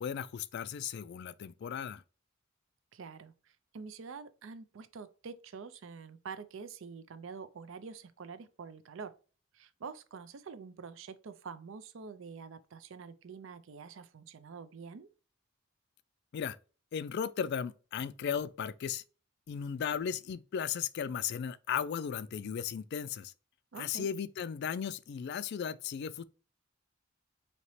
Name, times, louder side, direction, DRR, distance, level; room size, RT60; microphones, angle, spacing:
voice 1, 0.0-2.0 16.3-16.6 16.9-19.0 19.5-23.3 23.8-26.2, left 7 dB, 55° left, 0.3 m, -36 dB
voice 2, 2.9-3.3 3.7-9.1 9.5-15.1 23.7-24.1, right 5 dB, 70° right, 0.5 m, -46 dB
4.2 x 2.9 x 3.1 m
head